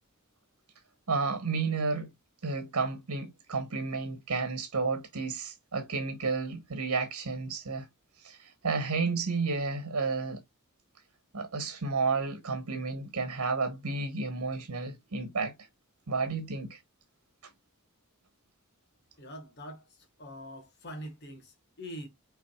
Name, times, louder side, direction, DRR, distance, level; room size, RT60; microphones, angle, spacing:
voice 1, 1.1-2.1 2.4-7.9 8.2-10.4 11.3-15.5 16.1-16.8, right 4 dB, 85° right, 1.1 m, -31 dB
voice 2, 19.2-22.1, equal, 50° left, 1.5 m, -44 dB
5.8 x 3.8 x 2.3 m
head